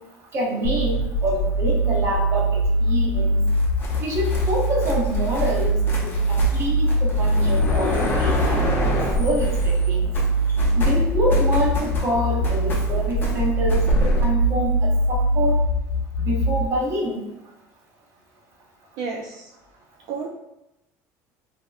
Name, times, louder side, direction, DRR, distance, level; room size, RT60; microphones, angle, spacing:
voice 1, 0.3-3.4 4.0-10.0 10.8-15.5 16.2-17.2, equal, 40° right, -2 dB, 0.8 m, -26 dB
sound 1, 0.6-16.6, right 1 dB, 85° left, 0.5 m, -22 dB
sound 2, 3.5-9.9 10.1-14.3, left 1 dB, 30° left, 0.7 m, -28 dB
voice 2, 19.0-19.5 20.1-20.3, right 5 dB, 65° right, 0 dB, 0.3 m, -31 dB
3.4 x 2.6 x 2.4 m, 0.90 s
cardioid pair, 140°, 7 cm